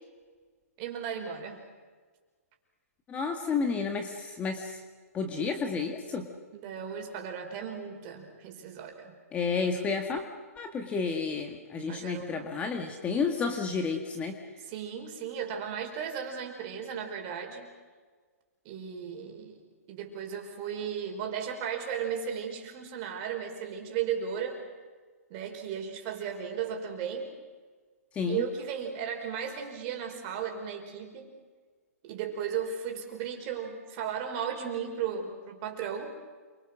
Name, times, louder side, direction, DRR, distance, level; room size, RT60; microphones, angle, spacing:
voice 1, 0.8-1.6 6.5-9.2 11.9-12.5 14.6-17.7 18.7-19.6 19.9-24.6 25.3-27.3 28.3-31.3 32.0-36.1, right 7 dB, 35° right, 3 dB, 5.2 m, -35 dB
voice 2, 3.1-4.8 5.1-6.3 9.3-10.2 10.6-14.4 28.1-28.4, left 5 dB, 15° left, 5 dB, 1.9 m, -31 dB
28.5 x 24.5 x 6.3 m, 1.5 s
hypercardioid pair, 140°, 8 cm